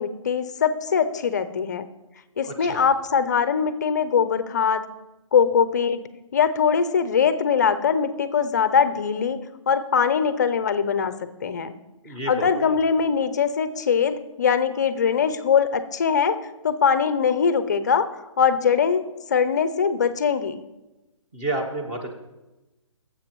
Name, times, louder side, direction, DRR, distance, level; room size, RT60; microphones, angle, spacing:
voice 1, 0.0-1.9 2.4-4.9 5.3-6.0 6.3-9.4 9.7-11.1 11.4-11.7 12.3-18.1 18.4-19.0 19.3-20.6, left 6 dB, 35° left, 13 dB, 0.5 m, -22 dB
voice 2, 2.5-2.9 12.0-12.8 21.3-22.1, right 2 dB, 15° right, 2 dB, 0.9 m, -30 dB
13.0 x 7.5 x 3.0 m, 1.0 s
hypercardioid pair, 160°, 17 cm